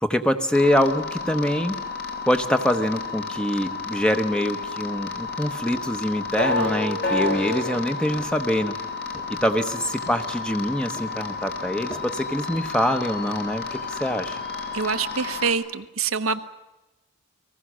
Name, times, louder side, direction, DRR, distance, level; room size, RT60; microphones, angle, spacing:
voice 1, 0.0-1.8 2.3-8.7 9.3-14.4, equal, 5° left, 8 dB, 1.1 m, -24 dB
sound 1, 0.5-15.5, left 3 dB, 50° left, 3.0 m, -31 dB
Walk footsteps, 5.6-6.1 6.6-7.6 8.2-8.7 9.1-9.7 10.1-10.7 11.0-13.2, left 1 dB, 20° left, 1.6 m, -46 dB
voice 2, 14.7-16.4, right 5 dB, 70° right, 8 dB, 1.0 m, -25 dB
30.0 x 20.0 x 6.3 m, 1.0 s
head